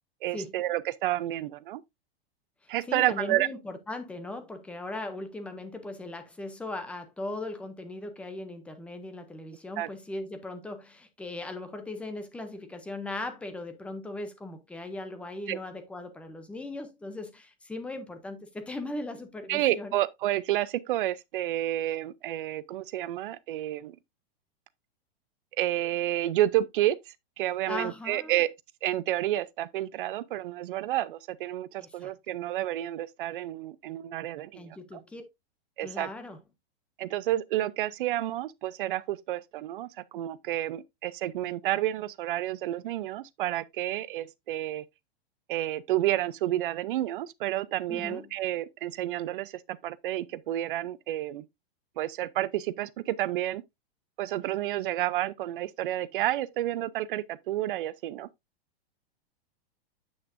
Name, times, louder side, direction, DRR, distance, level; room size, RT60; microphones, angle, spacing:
voice 1, 0.2-1.8 2.7-3.5 9.8-9.9 15.5-15.6 19.5-24.0 25.6-28.5 28.8-35.0 35.8-36.1 37.0-44.8 45.5-51.5 52.0-53.6 54.2-58.3, right 14 dB, 55° right, 0.7 m, -30 dB
voice 2, 2.6-20.0 27.7-28.4 31.8-32.1 34.5-35.2 35.8-36.4 47.9-48.3, left 2 dB, 5° left, 0.6 m, -38 dB
8.1 x 6.4 x 2.6 m
supercardioid pair, 160°, 31 cm